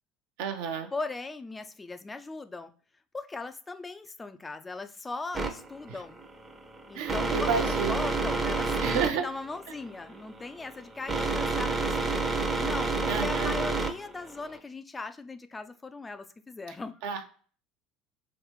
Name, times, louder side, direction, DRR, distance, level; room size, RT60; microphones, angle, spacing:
voice 1, 0.4-0.9 5.9-6.0 6.9-8.0 8.8-9.2 13.1-13.5 17.0-17.2, right 7 dB, 60° right, 5 dB, 0.6 m, -31 dB
voice 2, 0.9-2.7 3.1-6.2 6.9-12.2 12.6-17.0, left 3 dB, 20° left, 10 dB, 0.3 m, -39 dB
sound 1, 5.3-14.6, right 3 dB, 20° right, 0.6 m, -30 dB
3.2 x 3.0 x 3.0 m, 0.42 s
figure-of-eight pair, 65°, 0 cm